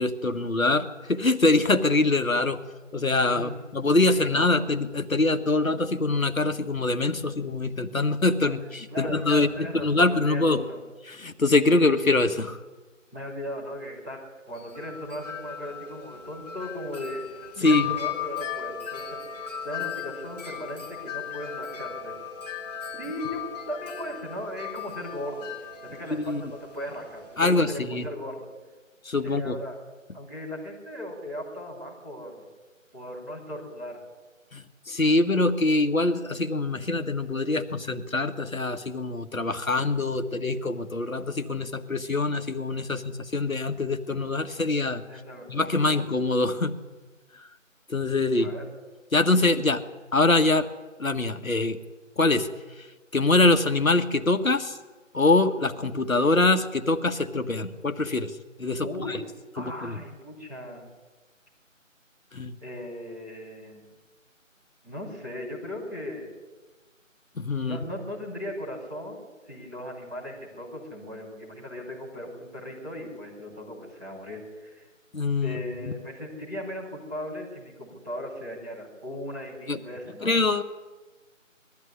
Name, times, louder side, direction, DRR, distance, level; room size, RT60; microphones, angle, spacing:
voice 1, 0.0-2.7 2.9-10.6 11.1-12.6 17.6-18.0 26.1-26.4 27.4-28.1 29.0-29.6 34.5-45.0 45.5-46.8 47.9-48.5 49.1-49.8 50.1-50.7 51.0-51.8 52.2-52.5 53.1-54.8 55.1-58.3 58.6-59.2 59.6-60.0 62.3-62.5 67.4-67.9 75.1-75.9 79.7-79.8 80.2-80.6, left 2 dB, 85° left, 8 dB, 1.7 m, -24 dB
voice 2, 3.3-4.5 8.4-8.5 8.9-10.8 11.8-11.9 13.1-14.2 14.5-17.2 17.6-22.1 23.0-28.5 29.2-29.7 30.1-32.5 32.9-34.0 45.1-45.6 45.9-46.0 48.4-48.6 58.8-59.2 59.5-60.9 62.6-63.8 64.8-66.3 67.6-74.9 75.4-80.4, left 1 dB, 5° right, -12 dB, 2.7 m, -37 dB
Wind chime, 14.5-27.8, left 8 dB, 30° left, 2.5 m, -37 dB
21.0 x 14.0 x 9.8 m, 1.2 s
figure-of-eight pair, 175°, 40 cm